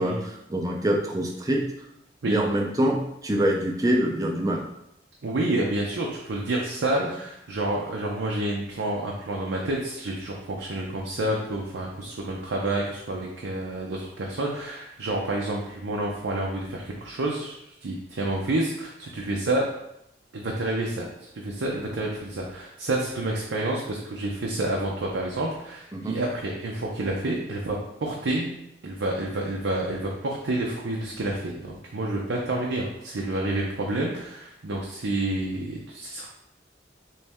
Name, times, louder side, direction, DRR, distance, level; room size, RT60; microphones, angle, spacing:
voice 1, 0.0-1.6 2.3-4.6 6.9-7.1 25.9-26.2, right 1 dB, 20° right, 1 dB, 0.5 m, -25 dB
voice 2, 5.2-19.7 20.3-28.6 28.8-36.3, right 1 dB, 90° right, -1 dB, 0.6 m, -29 dB
4.2 x 3.1 x 3.5 m, 0.82 s
head